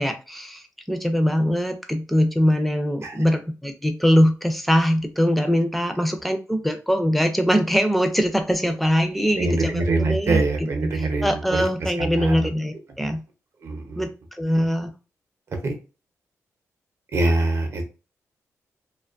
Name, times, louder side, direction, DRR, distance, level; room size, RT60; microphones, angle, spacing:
voice 1, 0.0-10.9 11.2-13.2 14.0-14.9, equal, ahead, 7 dB, 0.4 m, -22 dB
voice 2, 9.4-12.5 13.0-13.1 13.6-14.1 15.5-15.7 17.1-17.8, right 2 dB, 50° right, 4 dB, 0.6 m, -24 dB
2.5 x 2.3 x 2.4 m, 0.32 s
wide cardioid pair, 135°, 6 cm